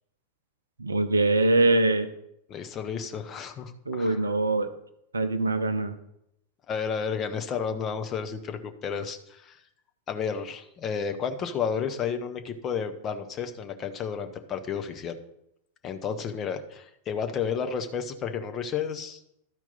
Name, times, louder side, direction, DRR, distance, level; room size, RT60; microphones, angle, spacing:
voice 1, 0.8-2.1 3.9-4.7 5.1-6.0, right 2 dB, 75° right, 11 dB, 0.6 m, -23 dB
voice 2, 2.5-4.2 6.7-9.6 10.1-15.2 15.8-19.2, left 6 dB, 30° left, 6 dB, 0.9 m, -32 dB
12.5 x 4.5 x 4.0 m, 0.79 s
figure-of-eight pair, 90°, 0 cm